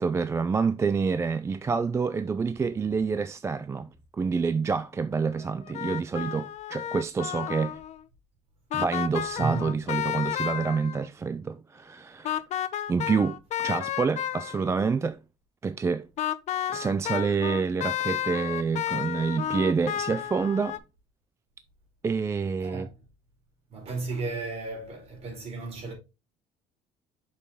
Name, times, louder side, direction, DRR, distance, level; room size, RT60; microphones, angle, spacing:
voice 1, 0.0-7.8 8.7-12.4 12.9-15.2 15.6-16.1 16.7-20.8 22.0-22.9, right 5 dB, 20° right, 0.3 m, -27 dB
sound 1, 5.4-8.0 8.7-11.0 12.2-14.7 16.2-20.8, left 11 dB, 55° left, 0.7 m, -32 dB
voice 2, 9.4-9.7 19.1-19.5 22.6-22.9 23.7-25.9, right 3 dB, 45° right, 4.1 m, -34 dB
6.4 x 5.4 x 3.5 m
cardioid pair, 120°, 14 cm